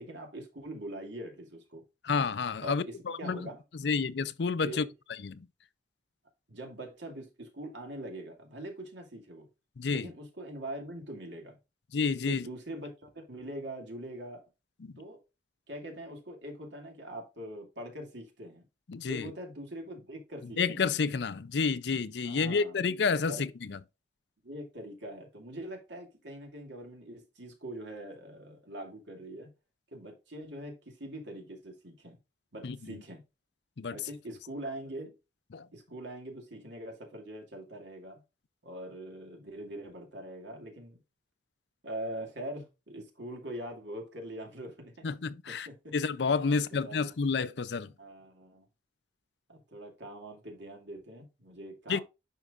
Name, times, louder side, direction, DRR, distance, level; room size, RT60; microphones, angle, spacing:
voice 1, 0.0-1.8 2.6-3.6 4.6-4.9 6.5-9.5 9.9-11.6 12.3-14.4 15.0-15.2 15.7-18.6 19.1-20.9 22.2-22.8 23.3-23.4 24.4-29.5 29.9-32.2 32.5-33.2 33.9-35.2 35.7-38.2 38.6-41.0 41.8-45.1 45.5-45.9 46.5-47.2 47.8-48.6 49.5-52.0, right 1 dB, 80° right, 2.5 m, -43 dB
voice 2, 2.0-3.5 3.8-4.8 5.2-5.5 9.8-10.1 11.9-12.5 14.8-14.9 18.9-19.3 20.6-23.8 32.6-32.8 33.8-34.0 35.5-35.7 45.0-45.7 45.9-47.9 51.9-52.0, left 5 dB, 65° left, 0.5 m, -30 dB
11.0 x 4.7 x 2.5 m
head